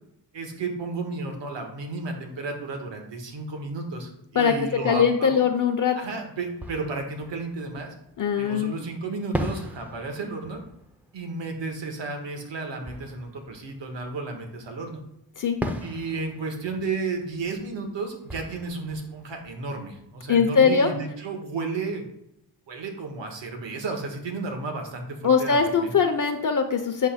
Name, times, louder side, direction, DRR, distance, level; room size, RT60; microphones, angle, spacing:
voice 1, 0.3-5.4 5.9-7.9 8.4-10.6 11.1-15.0 15.8-22.0 22.7-25.9, right 3 dB, 75° right, 3 dB, 1.4 m, -33 dB
voice 2, 4.8-6.0 8.2-8.7 15.4-15.6 20.3-20.9 25.2-27.1, left 6 dB, 45° left, 6 dB, 0.6 m, -21 dB
Fireworks, 6.5-8.5 9.3-14.7 15.6-20.3, equal, 5° right, 0.5 m, -38 dB
8.1 x 2.9 x 5.7 m, 0.82 s
wide cardioid pair, 170°, 44 cm